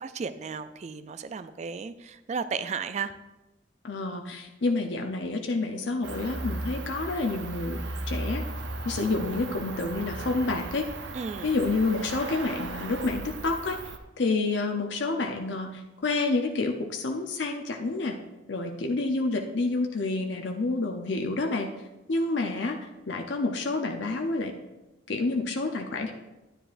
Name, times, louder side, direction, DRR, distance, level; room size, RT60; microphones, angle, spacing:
voice 1, 0.0-3.1 11.1-11.6, right 5 dB, 35° right, 12 dB, 0.3 m, -34 dB
voice 2, 3.8-8.4 8.8-10.9 11.4-13.8 14.2-18.1 18.5-21.7 22.1-24.5 25.1-26.1, left 3 dB, 70° left, 3 dB, 0.7 m, -29 dB
Cricket, 6.0-14.0, right 2 dB, 70° right, 0.7 m, -36 dB
9.9 x 9.8 x 2.5 m, 1.0 s
head